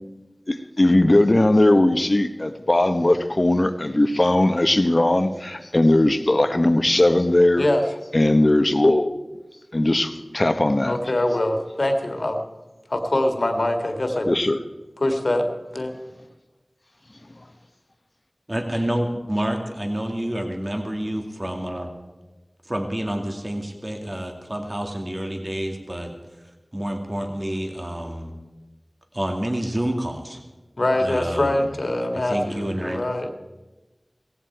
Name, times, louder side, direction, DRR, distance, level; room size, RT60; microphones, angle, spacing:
voice 1, 0.5-7.7 8.1-9.1 9.7-11.0 14.3-14.6, left 1 dB, 45° left, 9 dB, 1.0 m, -19 dB
voice 2, 10.8-12.4 12.9-14.3 15.0-15.9 30.8-33.3, left 1 dB, 65° left, 4 dB, 1.9 m, -23 dB
voice 3, 18.5-21.9 22.6-26.1 26.7-28.3 29.1-30.4 31.0-31.7 32.2-33.0, right 1 dB, 35° right, 3 dB, 2.2 m, -28 dB
17.5 x 15.5 x 4.7 m, 1.2 s
wide cardioid pair, 45°, 0 cm